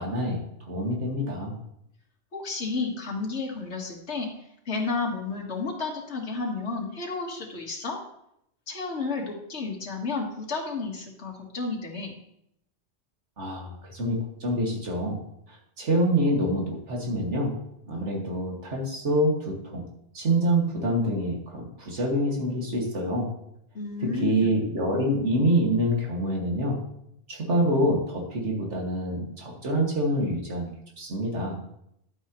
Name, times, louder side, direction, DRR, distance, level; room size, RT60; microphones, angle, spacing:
voice 1, 0.0-1.5 13.4-15.2 15.5-17.5 17.9-19.8 20.1-23.3 24.0-26.8 27.3-31.6, right 1 dB, 80° right, -1 dB, 2.4 m, -26 dB
voice 2, 2.3-4.3 4.7-8.0 8.7-12.1 23.7-24.5, left 4 dB, 70° left, 0 dB, 2.0 m, -31 dB
11.0 x 9.0 x 3.1 m, 0.77 s
omnidirectional pair, 1.2 m